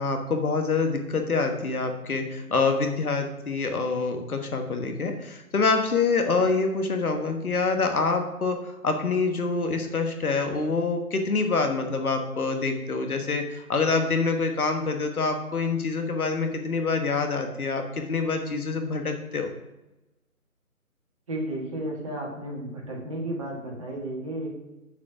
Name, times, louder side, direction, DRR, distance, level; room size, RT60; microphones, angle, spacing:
voice 1, 0.0-19.5, left 4 dB, 70° left, 4 dB, 1.4 m, -26 dB
voice 2, 21.3-24.6, right 1 dB, 20° right, -2 dB, 1.4 m, -33 dB
7.3 x 4.2 x 6.0 m, 0.99 s
figure-of-eight pair, 155°, 45 cm